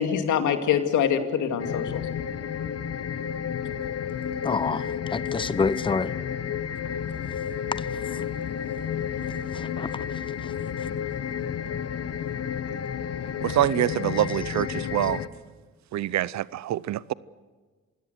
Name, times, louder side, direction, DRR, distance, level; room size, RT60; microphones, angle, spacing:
voice 1, 0.0-2.1, left 8 dB, 80° left, 2.4 m, -24 dB
sound 1, 1.6-15.3, left 8 dB, 55° left, 1.2 m, -31 dB
voice 2, 4.4-6.1 7.8-8.2 9.5-10.0 10.4-10.5 14.2-14.3 15.0-15.1, left 4 dB, 15° left, 0.8 m, -29 dB
voice 3, 13.4-15.2 15.9-17.1, right 12 dB, 65° right, 0.7 m, -25 dB
27.5 x 17.0 x 8.0 m
cardioid pair, 90°, 30 cm